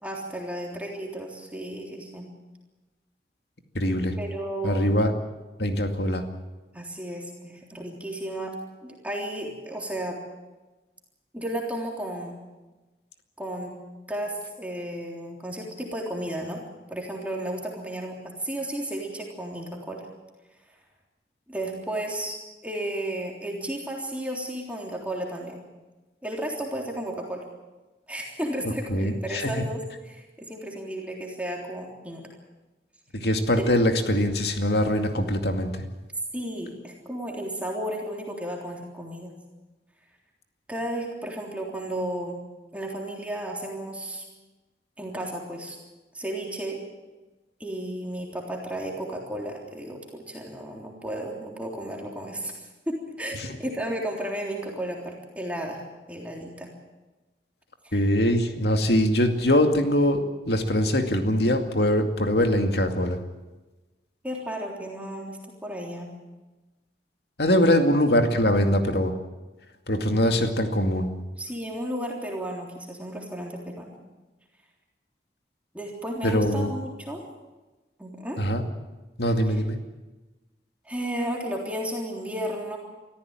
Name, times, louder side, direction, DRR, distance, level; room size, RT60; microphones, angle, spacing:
voice 1, 0.0-2.3 4.2-4.9 6.7-8.5 8.8-10.2 11.3-12.3 13.4-13.8 14.1-16.6 16.9-20.0 21.5-25.6 26.2-27.4 28.1-29.8 30.0-32.2 33.6-33.7 36.3-39.3 40.7-42.4 42.7-44.2 45.0-45.8 46.1-46.8 47.6-55.8 56.1-56.7 57.8-58.0 64.2-66.1 67.5-67.8 71.4-74.0 75.7-77.2 78.0-78.4 80.9-82.8, right 1 dB, 10° right, -1 dB, 3.4 m, -33 dB
voice 2, 3.7-4.1 4.6-5.1 5.6-6.2 28.9-29.6 33.1-35.8 53.4-53.5 57.9-63.2 67.4-69.1 69.9-71.1 76.2-76.7 78.4-78.6 79.2-79.8, left 1 dB, 70° left, 5 dB, 2.3 m, -22 dB
24.5 x 14.5 x 9.0 m, 1.1 s
head